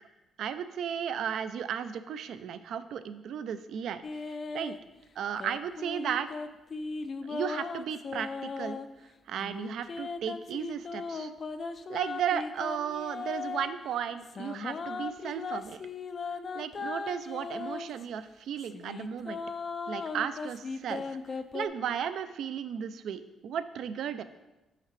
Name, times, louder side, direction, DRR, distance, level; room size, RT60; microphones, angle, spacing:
voice 1, 0.4-4.8 5.2-6.3 7.3-8.8 9.3-11.3 11.9-15.8 16.5-19.4 19.9-24.2, right 8 dB, 70° right, 12 dB, 0.4 m, -35 dB
sound 1, 4.0-4.8 5.4-8.9 9.4-13.7 14.2-18.1 18.6-21.7, left 4 dB, 45° left, 0.3 m, -37 dB
5.8 x 5.7 x 3.2 m, 1.0 s
cardioid pair, 90°, 0 cm